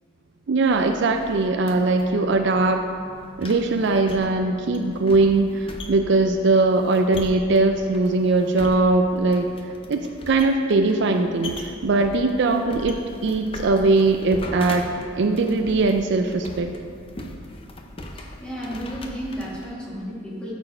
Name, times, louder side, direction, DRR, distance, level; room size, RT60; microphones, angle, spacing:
voice 1, 0.5-2.8 3.4-9.5 9.9-14.9 15.2-16.7, right 3 dB, 55° right, 5 dB, 0.4 m, -20 dB
sound 1, 0.7-19.7, left 1 dB, 25° left, 0.6 m, -40 dB
voice 2, 18.1-20.5, equal, 5° left, -7 dB, 1.8 m, -33 dB
12.5 x 4.4 x 4.4 m, 2.3 s
head